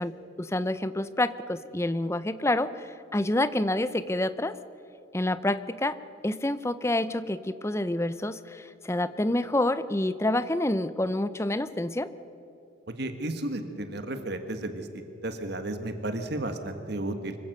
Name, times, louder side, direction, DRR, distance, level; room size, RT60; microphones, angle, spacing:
voice 1, 0.0-4.6 5.1-6.0 6.2-12.1, left 1 dB, 15° left, 14 dB, 0.5 m, -28 dB
voice 2, 12.9-17.4, right 1 dB, 55° right, 7 dB, 1.5 m, -33 dB
25.0 x 15.5 x 6.7 m, 2.9 s
head